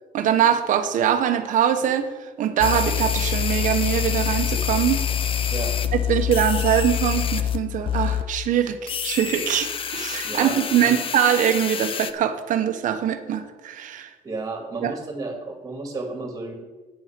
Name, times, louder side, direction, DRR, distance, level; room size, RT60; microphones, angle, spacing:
voice 1, 0.1-2.1 2.4-5.0 5.9-14.1 14.8-14.9, right 9 dB, 65° right, 8 dB, 1.1 m, -22 dB
sound 1, 2.6-7.6 7.9-8.2 8.9-12.1, left 9 dB, 40° left, 0.6 m, -26 dB
voice 2, 10.2-11.0 14.2-16.5, right 3 dB, 25° right, 2 dB, 2.4 m, -32 dB
9.3 x 7.9 x 6.0 m, 1.3 s
cardioid pair, 135°, 14 cm